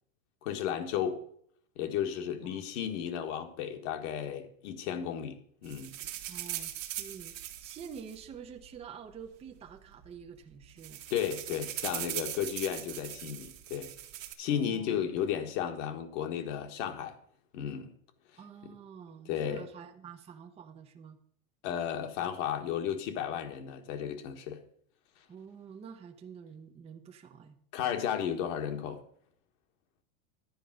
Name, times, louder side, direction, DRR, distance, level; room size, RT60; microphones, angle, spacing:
voice 1, 0.4-1.2 1.8-5.9 11.1-13.9 14.4-17.1 17.5-17.9 19.3-19.6 21.6-24.6 27.7-29.0, left 9 dB, 65° left, 1.7 m, -34 dB
sound 1, 5.6-8.9 9.7-9.8 10.0-10.2 10.5-14.3, right 13 dB, 75° right, 1.4 m, -40 dB
voice 2, 6.3-11.1 14.5-15.0 18.4-21.2 25.3-28.1, right 7 dB, 15° right, 0.7 m, -48 dB
10.5 x 4.9 x 7.8 m
supercardioid pair, 145°, 39 cm